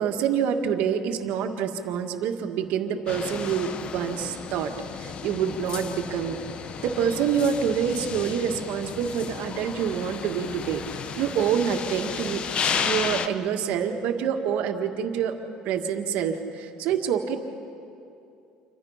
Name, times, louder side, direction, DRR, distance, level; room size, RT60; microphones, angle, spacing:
voice 1, 0.0-4.7 5.0-6.4 6.8-10.8 11.2-12.4 12.8-15.4 15.6-17.4, right 8 dB, 75° right, 5 dB, 1.8 m, -26 dB
sound 1, 3.1-13.3, left 7 dB, 40° left, 1.0 m, -33 dB
28.5 x 25.0 x 5.8 m, 2.7 s
cardioid pair, 125°, 3 cm